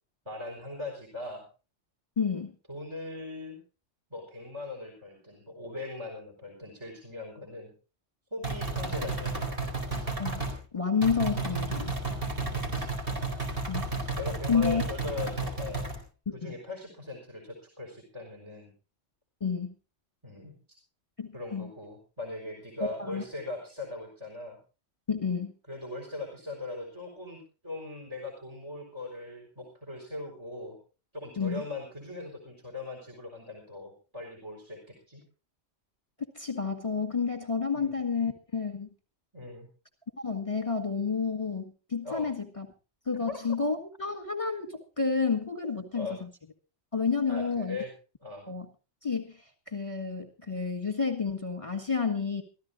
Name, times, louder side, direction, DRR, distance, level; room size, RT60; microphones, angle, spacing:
voice 1, 0.3-1.4 2.7-3.6 4.1-7.7 8.3-9.8 12.5-13.0 14.1-15.9 16.3-18.7 20.2-20.5 21.3-24.6 25.7-30.8 31.1-35.2 37.7-37.9 39.3-39.7 42.0-42.3 43.3-43.4 45.9-46.2 47.3-47.9 48.2-48.4, left 3 dB, 20° right, 1 dB, 4.3 m, -40 dB
voice 2, 2.2-2.5 10.2-10.5 10.7-11.9 13.7-13.8 14.5-14.8 16.4-16.5 19.4-19.7 21.2-21.7 22.8-23.2 25.1-25.5 31.4-31.6 36.4-38.9 40.2-42.7 43.1-46.1 46.9-47.8 48.5-48.7 49.0-52.4, left 5 dB, 25° left, 5 dB, 1.7 m, -30 dB
sound 1, 8.4-10.6 11.0-16.0, right 3 dB, 50° right, 4.3 m, -32 dB
24.5 x 14.5 x 2.6 m, 0.34 s
omnidirectional pair, 1.2 m